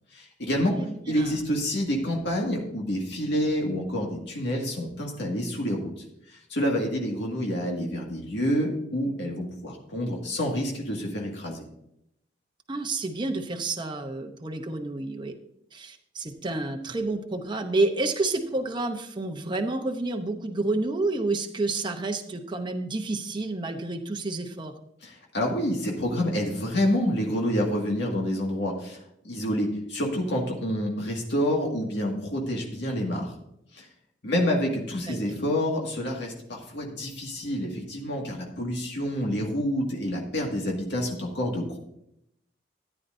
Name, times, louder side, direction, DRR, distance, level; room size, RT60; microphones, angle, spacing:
voice 1, 0.1-0.8 1.1-11.6 25.0-33.4 33.7-33.9 34.2-41.8, equal, 65° left, -1 dB, 2.0 m, -28 dB
voice 2, 12.7-15.3 15.7-24.7 35.1-35.4, right 2 dB, 25° right, 4 dB, 0.8 m, -29 dB
14.0 x 10.0 x 2.6 m, 0.76 s
head